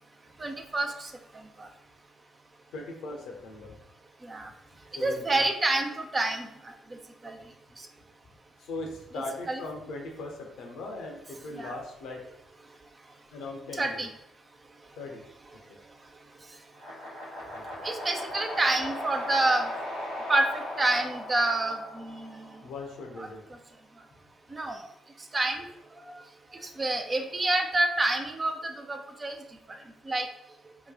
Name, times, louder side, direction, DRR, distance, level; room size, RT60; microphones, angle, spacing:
voice 1, 0.4-1.1 1.6-1.7 4.2-4.5 4.9-6.7 7.2-7.3 9.5-9.6 11.6-11.7 13.8-14.1 17.8-19.7 20.3-22.5 24.5-24.8 25.3-25.6 26.8-29.4 30.1-30.3, right 2 dB, 35° right, 4 dB, 0.5 m, -28 dB
voice 2, 2.7-3.8 5.0-5.5 8.6-12.2 13.3-14.1 15.0-15.2 15.7-15.8 17.5-17.9 22.6-23.4, left 2 dB, 70° left, 1 dB, 0.7 m, -39 dB
sound 1, 16.7-22.9, left 1 dB, 85° right, 1.0 m, -38 dB
3.0 x 2.2 x 3.8 m, 0.78 s
hypercardioid pair, 45°, 0 cm